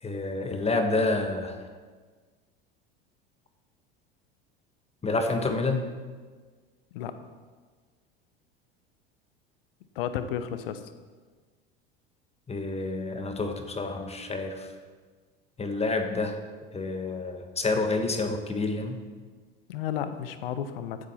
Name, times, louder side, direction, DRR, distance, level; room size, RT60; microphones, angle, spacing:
voice 1, 0.0-1.6 5.0-5.9 12.5-14.7 15.6-16.4 16.7-19.0, left 3 dB, 20° left, 5 dB, 1.4 m, -28 dB
voice 2, 10.0-10.8 19.7-21.0, left 9 dB, 75° left, 11 dB, 0.9 m, -32 dB
14.5 x 7.8 x 4.4 m, 1.4 s
hypercardioid pair, 80°, 29 cm